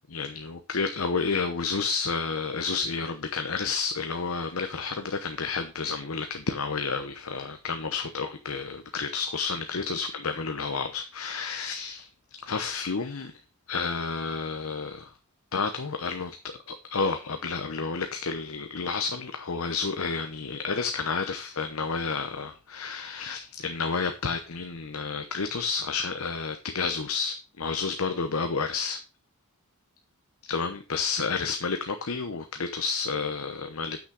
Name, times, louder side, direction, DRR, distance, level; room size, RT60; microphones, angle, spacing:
voice 1, 0.1-12.1 12.4-13.3 13.7-15.1 15.5-16.4 16.7-29.0 30.5-34.0, left 4 dB, 85° left, 0.9 m, -30 dB
8.4 x 6.4 x 4.8 m
head